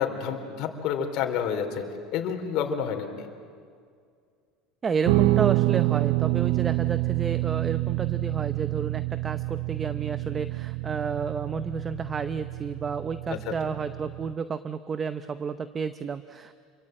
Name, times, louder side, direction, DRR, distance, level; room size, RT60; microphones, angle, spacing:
voice 1, 0.0-1.8 2.1-3.3 13.3-13.5, left 8 dB, 55° left, 3 dB, 3.6 m, -29 dB
voice 2, 4.8-16.5, right 5 dB, 25° right, 11 dB, 0.8 m, -31 dB
Guitar, 5.0-14.3, right 20 dB, 80° right, 0.6 m, -27 dB
28.0 x 23.0 x 9.0 m, 2.2 s
supercardioid pair, 135°, 0 cm